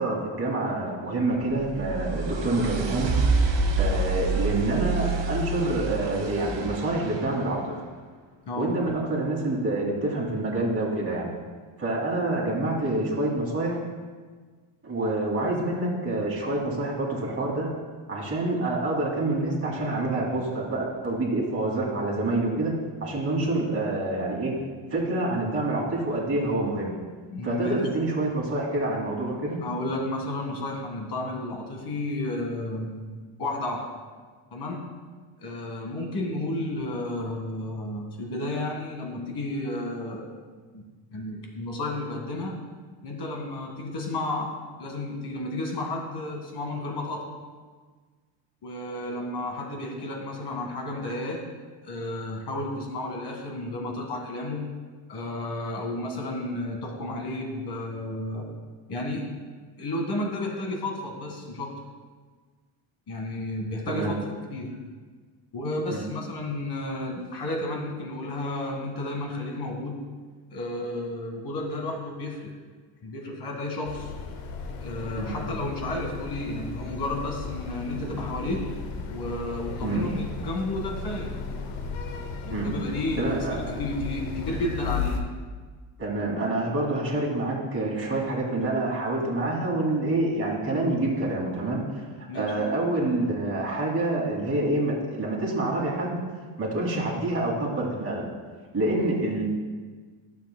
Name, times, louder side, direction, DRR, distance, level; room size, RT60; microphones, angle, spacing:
voice 1, 0.0-3.1 3.8-7.7 8.6-11.3 11.8-13.8 14.8-17.7 18.1-22.7 23.0-24.5 24.9-26.9 27.4-29.6 63.9-64.1 65.9-66.1 75.2-75.3 79.8-80.0 82.5-82.7 83.2-83.8 86.0-92.1 92.3-96.2 96.6-98.2 98.7-99.5, right 2 dB, 25° right, -4 dB, 2.2 m, -27 dB
sound 1, 1.4-7.5, right 3 dB, 60° right, 1.2 m, -27 dB
voice 2, 27.3-27.9 29.6-33.0 33.4-33.8 34.5-34.8 35.4-40.2 40.7-40.8 41.1-42.5 43.0-44.5 44.8-47.2 48.6-51.4 51.8-54.7 55.1-58.5 58.9-59.2 59.8-61.7 63.1-64.1 64.5-64.7 65.5-70.0 70.5-72.5 73.0-74.1 74.8-78.6 79.1-81.3 82.5-85.2 92.3-92.5, left 2 dB, 50° left, 0 dB, 1.9 m, -32 dB
sound 2, 73.8-85.2, left 5 dB, 90° left, 0.9 m, -35 dB
11.5 x 7.0 x 2.2 m, 1.5 s
cardioid pair, 120°, 50 cm